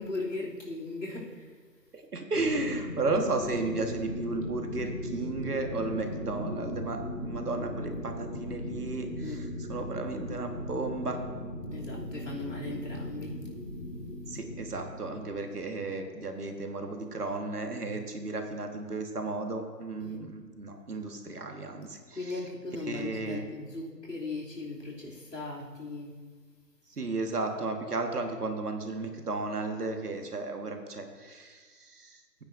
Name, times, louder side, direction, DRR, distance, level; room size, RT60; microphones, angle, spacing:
voice 1, 0.0-1.5 9.2-9.4 11.7-13.4 20.0-20.2 22.1-26.2, left 2 dB, 75° left, -4 dB, 3.0 m, -38 dB
voice 2, 1.9-9.4 9.7-11.2 14.3-22.2 22.9-23.5 27.0-32.4, right 3 dB, 65° right, 4 dB, 1.6 m, -34 dB
sound 1, 2.3-15.7, left 1 dB, 20° left, 0.9 m, -38 dB
17.5 x 9.1 x 2.6 m, 1.5 s
figure-of-eight pair, 160°, 50 cm